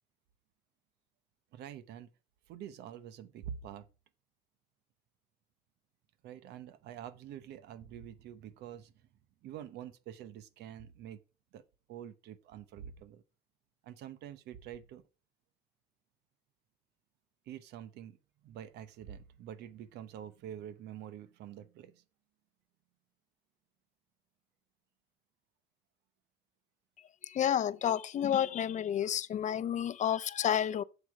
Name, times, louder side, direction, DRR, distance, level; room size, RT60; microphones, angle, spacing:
voice 1, 1.5-2.1 2.5-3.9 6.2-8.9 9.4-11.2 11.5-11.6 11.9-13.2 13.8-15.0 17.5-18.2 18.4-22.0, right 10 dB, 80° right, 1.0 m, -46 dB
voice 2, 27.2-30.8, left 10 dB, 45° left, 0.6 m, -30 dB
8.3 x 6.9 x 4.8 m
cardioid pair, 110°, 17 cm